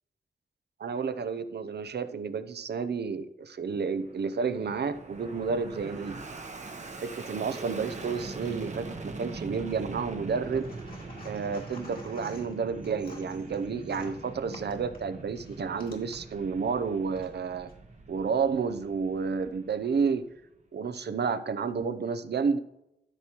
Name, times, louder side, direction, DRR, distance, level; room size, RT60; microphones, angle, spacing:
voice 1, 0.8-6.1 7.0-10.7 11.2-17.7 18.1-20.3 20.7-22.6, right 5 dB, 70° right, 11 dB, 0.5 m, -31 dB
Fixed-wing aircraft airplane, 3.7-20.4, right 3 dB, 40° right, 0.8 m, -43 dB
sound 1, 10.4-16.2 17.0-17.8, left 2 dB, 55° left, 2.1 m, -50 dB
13.0 x 6.0 x 2.9 m, 0.87 s
wide cardioid pair, 115°, 18 cm